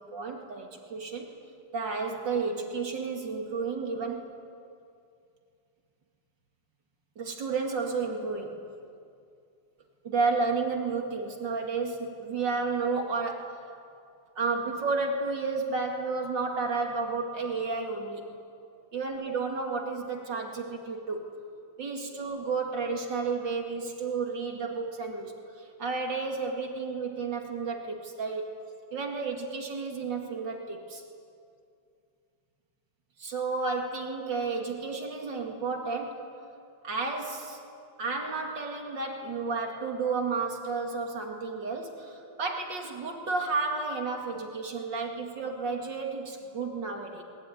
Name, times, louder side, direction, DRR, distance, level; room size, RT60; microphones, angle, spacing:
voice 1, 0.0-1.4 1.7-4.3 7.2-8.6 10.0-13.6 14.4-18.3 18.9-21.3 21.8-28.5 28.9-31.0 33.2-36.3 36.8-37.6 38.0-47.2, right 4 dB, 75° right, 2 dB, 2.9 m, -32 dB
21.0 x 21.0 x 9.5 m, 2.4 s
omnidirectional pair, 2.0 m